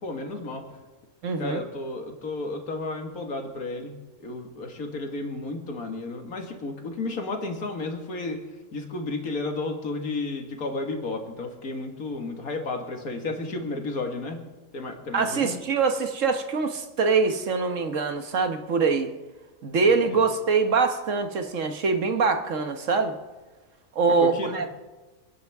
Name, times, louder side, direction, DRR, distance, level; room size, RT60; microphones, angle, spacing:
voice 1, 0.0-0.6 1.4-4.0 4.2-8.4 8.7-14.4 14.7-15.6 19.8-20.3 24.2-24.6, left 2 dB, 85° left, 4 dB, 2.2 m, -32 dB
voice 2, 1.2-1.6 15.1-19.1 19.6-23.2 23.9-24.7, right 4 dB, 60° right, 6 dB, 1.4 m, -24 dB
29.5 x 10.5 x 3.5 m, 1.2 s
omnidirectional pair, 1.5 m